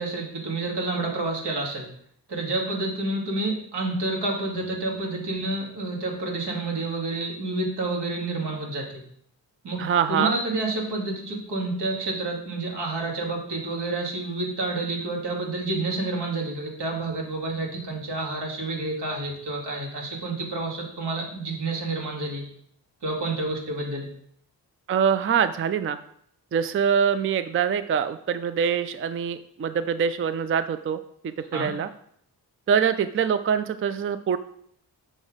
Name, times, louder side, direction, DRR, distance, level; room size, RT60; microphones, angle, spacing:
voice 1, 0.0-1.9 2.3-9.0 9.6-9.8 10.1-22.4 23.0-24.1 31.5-31.7, right 2 dB, 85° right, -1 dB, 2.5 m, -29 dB
voice 2, 9.8-10.3 24.9-26.0 26.5-31.9 32.7-34.4, right 7 dB, 35° right, 12 dB, 0.4 m, -24 dB
6.3 x 6.2 x 5.0 m, 0.67 s
wide cardioid pair, 120°, 39 cm